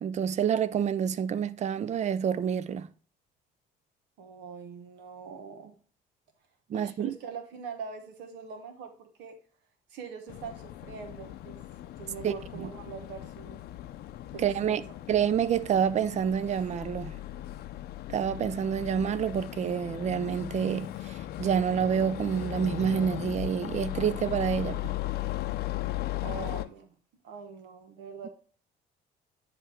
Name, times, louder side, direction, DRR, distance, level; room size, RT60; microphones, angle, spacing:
voice 1, 0.0-2.9 6.7-7.2 12.2-12.7 14.4-14.8 15.1-17.1 18.1-24.8, right 8 dB, 45° right, 0.5 m, -28 dB
voice 2, 4.2-5.7 6.7-9.3 9.9-11.6 12.0-13.6 14.3-14.8 26.2-26.9 27.2-28.3, right 6 dB, 85° right, 1.1 m, -43 dB
sound 1, 10.3-26.7, left 15 dB, 70° left, 0.6 m, -37 dB
9.8 x 3.4 x 4.4 m
cardioid pair, 110°, 17 cm